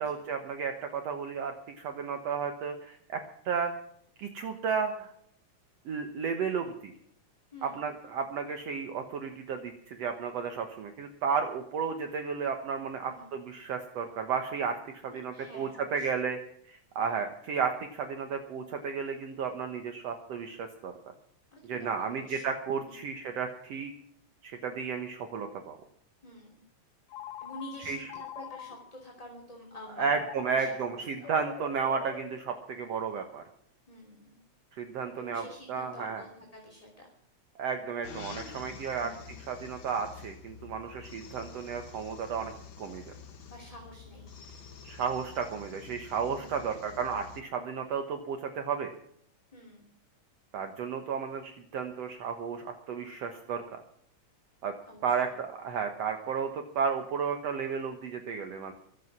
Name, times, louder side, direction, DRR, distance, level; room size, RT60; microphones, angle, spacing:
voice 1, 0.0-3.2 3.5-3.7 4.2-5.1 5.9-6.9 7.6-14.8 15.0-16.4 16.7-20.9 21.6-23.9 24.4-25.8 27.9-28.1 30.0-33.4 34.8-36.2 37.6-39.1 39.5-42.5 42.8-43.0 44.8-48.9 50.5-53.6 54.6-54.7 55.0-58.7, right 6 dB, 60° right, 6 dB, 2.2 m, -33 dB
voice 2, 7.5-7.9 13.0-13.4 15.0-16.1 17.0-17.2 21.5-22.4 22.8-23.1 26.2-26.6 27.4-31.3 33.9-34.4 35.2-37.1 39.0-39.2 43.5-44.3 46.3-46.7 49.5-49.9 54.9-55.4, left 1 dB, 10° left, 0 dB, 2.8 m, -49 dB
Telephone, 27.1-29.1 29.9-33.0, left 10 dB, 70° left, 2.2 m, -45 dB
sound 1, 38.0-47.4, left 6 dB, 50° left, 1.9 m, -48 dB
23.5 x 8.4 x 6.1 m, 0.68 s
omnidirectional pair, 3.4 m